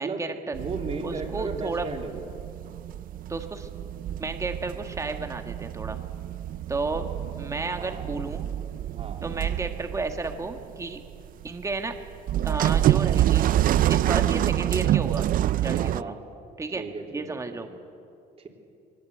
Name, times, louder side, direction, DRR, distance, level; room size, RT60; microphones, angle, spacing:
voice 1, 0.0-0.5 1.0-1.9 3.3-3.7 4.2-6.0 6.7-7.1 7.4-8.5 9.2-11.0 11.4-11.9 12.4-13.5 13.9-15.3 15.5-16.1 16.6-16.9 17.1-17.7, right 3 dB, 20° right, 6 dB, 1.5 m, -32 dB
voice 2, 0.5-2.3 7.7-8.2 8.9-9.5 15.8-16.2 16.8-17.7 18.4-18.5, right 4 dB, 35° right, 2 dB, 3.7 m, -36 dB
sound 1, 0.5-16.0, right 12 dB, 55° right, 0.5 m, -27 dB
21.5 x 19.5 x 8.5 m, 2.6 s
cardioid pair, 110°, 17 cm